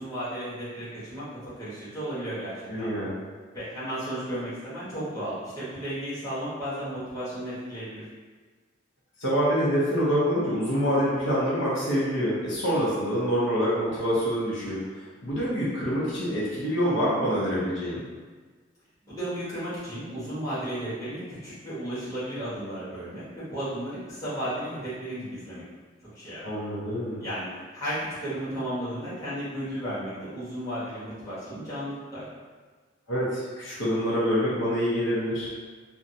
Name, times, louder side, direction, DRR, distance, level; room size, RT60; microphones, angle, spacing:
voice 1, 0.0-2.9 3.5-8.1 19.1-25.6 26.0-26.5 27.2-32.2, right 1 dB, 20° left, -12 dB, 1.0 m, -34 dB
voice 2, 2.7-3.2 9.2-18.0 26.4-27.2 33.1-35.5, equal, 85° left, -7 dB, 0.8 m, -26 dB
2.5 x 2.2 x 2.6 m, 1.4 s
head